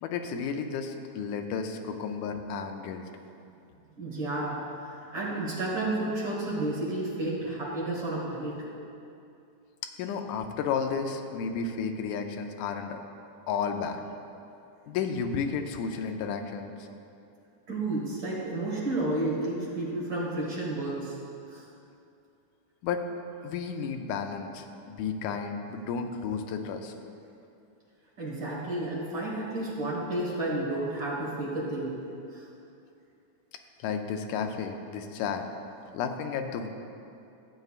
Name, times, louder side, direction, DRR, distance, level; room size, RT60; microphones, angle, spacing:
voice 1, 0.0-3.1 10.0-13.0 13.5-14.0 14.9-16.9 22.8-23.0 23.4-26.9 33.8-35.5 35.9-36.7, left 6 dB, 80° left, 5 dB, 2.0 m, -32 dB
voice 2, 4.0-8.7 17.7-21.2 21.5-21.6 28.2-32.0 32.3-32.5, right 2 dB, 45° right, -5 dB, 2.1 m, -31 dB
14.5 x 7.8 x 2.4 m, 2.6 s
omnidirectional pair, 3.7 m